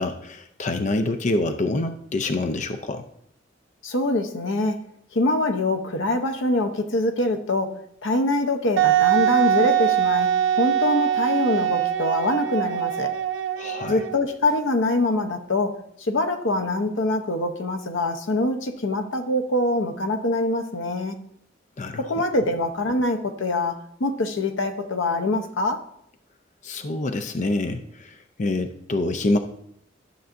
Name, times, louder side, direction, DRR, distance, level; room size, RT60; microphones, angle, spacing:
voice 1, 0.0-3.0 13.6-14.0 21.8-22.1 26.6-29.4, left 2 dB, 40° left, 8 dB, 0.5 m, -26 dB
voice 2, 3.8-4.8 5.1-10.3 10.5-13.1 13.9-21.2 22.0-23.7 24.0-25.8, left 2 dB, 90° left, 7 dB, 0.8 m, -24 dB
Wind instrument woodwind instrument, 8.8-14.3, right 10 dB, 75° right, 0.4 m, -22 dB
12.0 x 6.8 x 2.6 m, 0.71 s
head